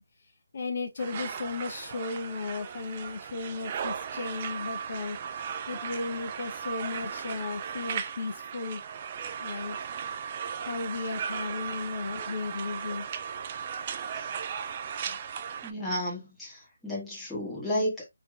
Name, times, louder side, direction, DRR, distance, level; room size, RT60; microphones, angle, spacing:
voice 1, 0.5-8.8 9.4-9.8 10.6-13.1, left 3 dB, 50° left, 0.7 m, -35 dB
sound 1, 1.0-15.7, right 7 dB, 30° right, 0.3 m, -37 dB
voice 2, 15.6-18.1, left 1 dB, ahead, 1.3 m, -32 dB
3.2 x 2.8 x 2.3 m
figure-of-eight pair, 160°, 0 cm